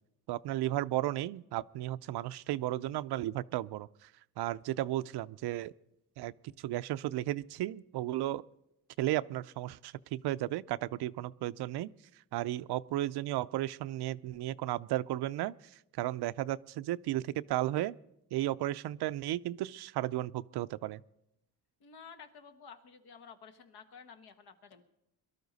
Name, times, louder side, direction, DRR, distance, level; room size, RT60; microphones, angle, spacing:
voice 1, 0.3-4.1 4.4-5.7 6.2-8.4 9.0-11.9 12.3-15.5 16.0-18.0 18.3-21.0, right 15 dB, 85° right, 16 dB, 0.5 m, -34 dB
voice 2, 21.8-24.8, left 6 dB, 75° left, 7 dB, 1.4 m, -52 dB
22.5 x 12.5 x 4.0 m, 0.84 s
cardioid pair, 135°, 38 cm